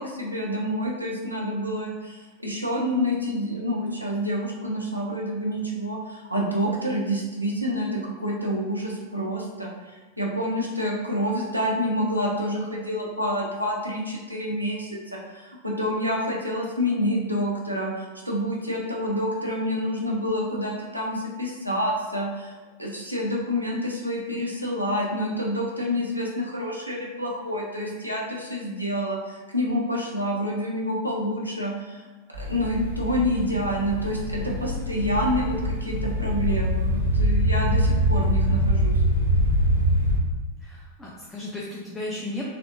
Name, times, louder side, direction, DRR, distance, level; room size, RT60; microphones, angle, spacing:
voice 1, 0.0-22.5 22.8-32.0 32.4-38.9, equal, 90° right, -3 dB, 0.7 m, -28 dB
sound 1, 32.3-40.2, equal, 85° left, 0.9 m, -24 dB
voice 2, 40.6-42.4, left 2 dB, 10° left, -4 dB, 0.5 m, -35 dB
4.2 x 2.7 x 2.6 m, 1.4 s
figure-of-eight pair, 90°, 0 cm